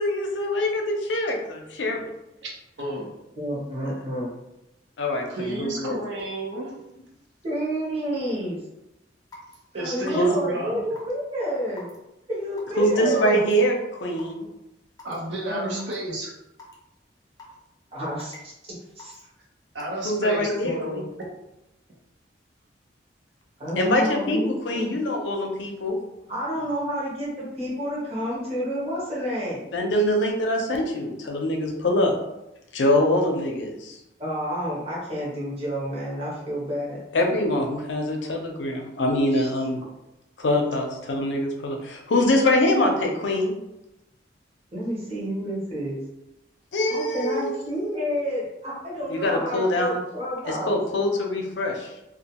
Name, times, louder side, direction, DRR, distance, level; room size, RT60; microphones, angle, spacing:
voice 1, 0.0-2.1 5.0-6.0 10.2-10.3 12.8-14.5 20.0-21.0 23.8-26.0 29.7-32.1 32.7-34.0 37.1-39.8 40.4-43.6 46.7-47.5 49.1-50.0 50.5-51.9, left 1 dB, 85° left, 2 dB, 0.5 m, -24 dB
voice 2, 2.8-3.1 5.3-6.7 9.7-10.8 13.0-13.4 15.0-16.3 19.7-21.1, right 1 dB, 75° right, -3 dB, 0.8 m, -31 dB
voice 3, 3.3-4.3 7.4-8.6 9.7-11.9 12.3-13.5 15.4-15.8 17.9-18.5 19.0-19.2 23.6-24.9 26.3-29.6 34.2-37.0 39.3-39.6 44.7-46.0 46.9-50.8, equal, 35° right, -7 dB, 0.9 m, -29 dB
Raindrop / Water tap faucet / Drip, 9.3-9.5 10.1-10.4 11.0-11.1 11.8-12.0 12.6-12.8 13.4-13.6 14.2-14.3 15.0-15.2 15.8-15.9 16.6-16.7 17.4-17.7 18.2-18.5 19.0-19.2 19.8-20.0, left 2 dB, 20° left, 0.5 m, -45 dB
2.3 x 2.2 x 2.8 m, 0.91 s
head